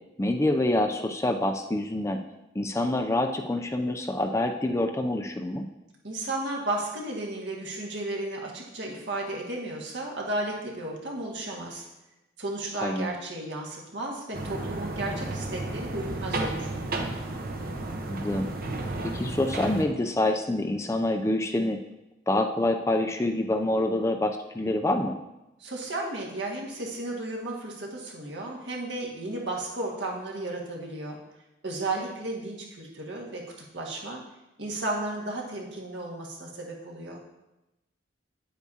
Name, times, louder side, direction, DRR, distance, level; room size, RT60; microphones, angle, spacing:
voice 1, 0.2-2.2 2.5-5.7 12.8-13.1 18.1-18.5 19.0-21.8 22.3-25.2, left 1 dB, 15° left, 5 dB, 0.4 m, -26 dB
voice 2, 6.0-11.9 12.4-16.7 25.6-31.2 31.6-34.2 34.6-37.2, right 2 dB, 70° right, -1 dB, 1.8 m, -34 dB
sound 1, 14.3-19.8, right 2 dB, 50° right, 0.9 m, -33 dB
9.8 x 8.1 x 2.8 m, 0.96 s
head